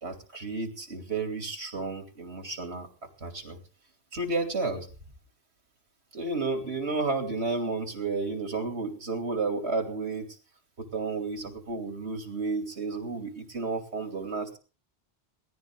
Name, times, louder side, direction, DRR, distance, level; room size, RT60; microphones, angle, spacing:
voice 1, 0.0-2.9 3.2-3.6 4.1-4.9 6.1-10.3 10.8-14.5, right 3 dB, 85° right, 5 dB, 3.0 m, -32 dB
19.0 x 14.5 x 3.6 m, 0.34 s
omnidirectional pair, 1.1 m